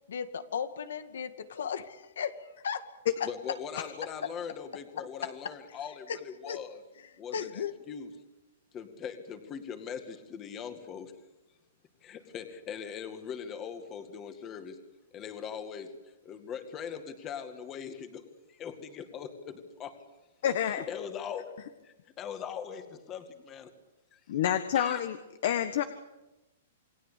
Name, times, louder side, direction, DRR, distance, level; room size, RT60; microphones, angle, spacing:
voice 1, 0.1-2.3 2.6-2.9 3.2-3.3 6.1-6.2 6.5-6.6 7.3-7.7, left 7 dB, 85° left, 10 dB, 2.3 m, -35 dB
voice 2, 3.2-6.8 7.2-8.1 8.7-11.1 12.0-14.8 15.1-20.0 20.7-21.5 21.8-23.7 24.1-24.2 24.7-25.0, left 7 dB, 20° left, 8 dB, 2.2 m, -41 dB
voice 3, 20.4-20.8 24.3-25.2 25.4-25.8, left 10 dB, 55° left, 10 dB, 1.5 m, -28 dB
28.5 x 20.5 x 8.4 m, 1.0 s
hypercardioid pair, 165°, 0 cm